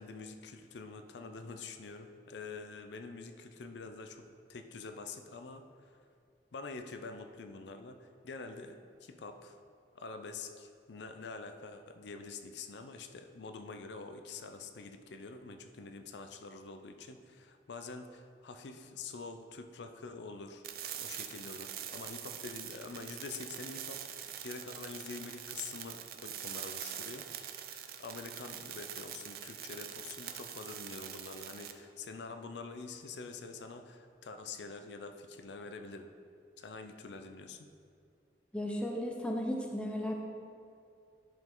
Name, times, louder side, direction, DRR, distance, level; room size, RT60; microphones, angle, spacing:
voice 1, 0.0-4.2 4.5-6.0 6.5-9.6 9.9-20.6 21.0-27.3 27.7-36.1 36.6-37.7, left 4 dB, 75° left, 7 dB, 0.5 m, -46 dB
sound 1, 20.6-31.7, right 10 dB, 55° right, 0.5 m, -44 dB
voice 2, 38.5-40.1, equal, 5° left, 1 dB, 0.7 m, -35 dB
10.5 x 5.1 x 3.8 m, 2.4 s
head